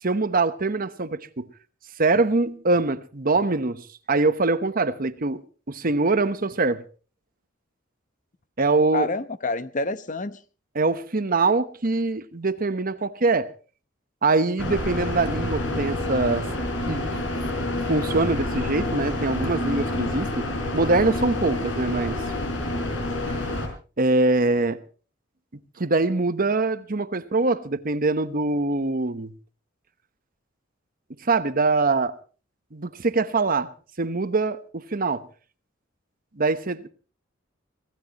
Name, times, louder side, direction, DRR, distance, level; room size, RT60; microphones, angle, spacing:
voice 1, 0.0-1.5 2.0-6.8 8.6-9.1 10.7-13.5 14.2-16.5 16.9-17.2 17.9-20.5 20.7-22.2 23.3-23.6 24.0-24.8 25.8-29.3 31.2-32.2 32.7-33.7 34.0-35.2 36.4-36.9, right 3 dB, 45° right, 1.0 m, -23 dB
voice 2, 8.9-10.4, left 2 dB, 40° left, 0.9 m, -28 dB
sound 1, 14.6-23.7, left 1 dB, 70° left, 5.3 m, -28 dB
25.0 x 16.0 x 3.0 m
head